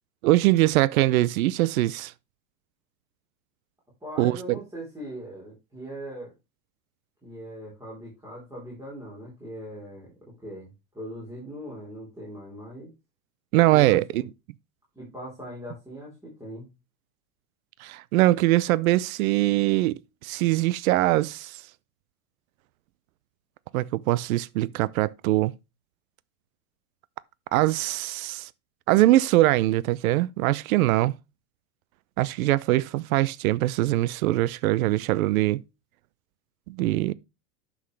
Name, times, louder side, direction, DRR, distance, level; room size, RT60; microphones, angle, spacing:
voice 1, 0.2-2.1 4.2-4.6 13.5-14.2 17.8-21.6 23.7-25.5 27.5-28.5 28.9-31.2 32.2-35.6 36.7-37.1, right 17 dB, 80° right, 0.6 m, -22 dB
voice 2, 4.0-6.3 7.2-10.1 10.4-12.9 13.7-14.3 15.0-16.7, equal, 10° right, 3.9 m, -40 dB
11.0 x 6.3 x 3.3 m
supercardioid pair, 140°, 41 cm